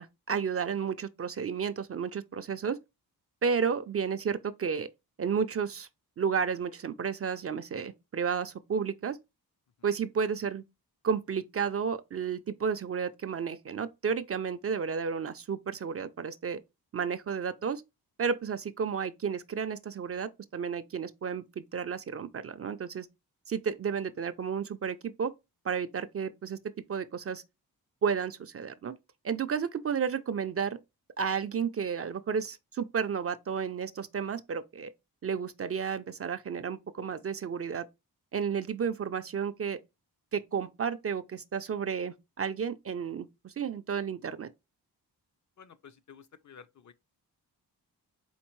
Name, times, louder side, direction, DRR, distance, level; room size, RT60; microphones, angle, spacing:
voice 1, 0.0-2.8 3.4-4.9 5.2-5.9 6.2-9.2 9.8-10.6 11.0-16.6 16.9-17.8 18.2-23.1 23.5-25.3 25.6-26.6 26.9-27.4 28.0-29.0 29.2-30.8 31.2-34.9 35.2-37.9 38.3-39.8 40.3-44.5, right 6 dB, 40° right, 0.4 m, -32 dB
voice 2, 45.6-46.9, left 7 dB, 50° left, 0.5 m, -52 dB
4.4 x 3.5 x 3.0 m
cardioid pair, 80°, 39 cm